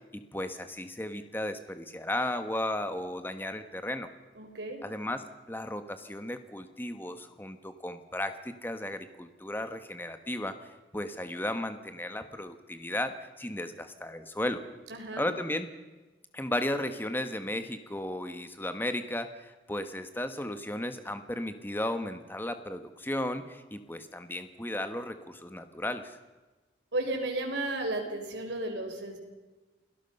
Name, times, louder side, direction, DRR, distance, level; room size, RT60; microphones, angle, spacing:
voice 1, 0.1-4.1 4.8-10.6 10.9-14.6 15.1-15.7 16.3-26.1, left 1 dB, 10° left, 9 dB, 1.3 m, -35 dB
voice 2, 4.4-4.8 14.9-15.3 26.9-29.2, right 2 dB, 85° right, 3 dB, 4.2 m, -33 dB
29.0 x 18.0 x 5.5 m, 1.2 s
head